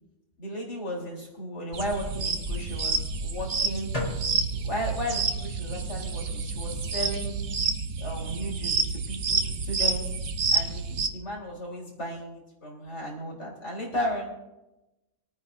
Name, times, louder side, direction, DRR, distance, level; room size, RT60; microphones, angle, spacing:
voice 1, 0.4-3.9 4.5-7.4 8.0-10.0 10.5-14.3, equal, 50° left, -3 dB, 4.2 m, -35 dB
sound 1, 1.7-11.1, right 4 dB, 50° right, 1.0 m, -29 dB
sound 2, 3.9-10.1, right 4 dB, 20° left, 3.8 m, -38 dB
26.5 x 9.3 x 2.7 m, 0.97 s
omnidirectional pair, 1.5 m